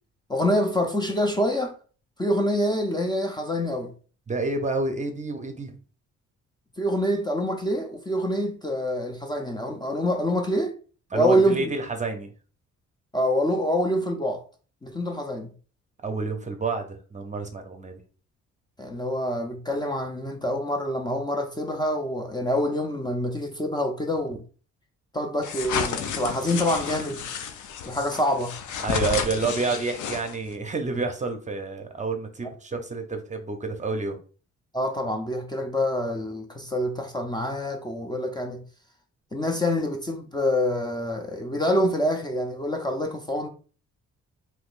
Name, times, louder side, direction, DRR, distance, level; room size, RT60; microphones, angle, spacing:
voice 1, 0.3-1.7 2.2-3.9 6.8-10.8 11.1-11.7 13.1-14.4 14.8-15.5 18.8-24.4 25.1-27.2 27.8-28.6 34.7-38.6 39.3-43.5, equal, 15° left, 0.6 m, -26 dB
voice 2, 4.3-5.7 11.1-12.3 16.0-18.0 28.8-34.2, right 3 dB, 25° right, 0.7 m, -29 dB
Pulling curtains, 25.4-30.5, left 7 dB, 75° left, 0.6 m, -31 dB
3.4 x 3.0 x 2.5 m
cardioid pair, 90°, 30 cm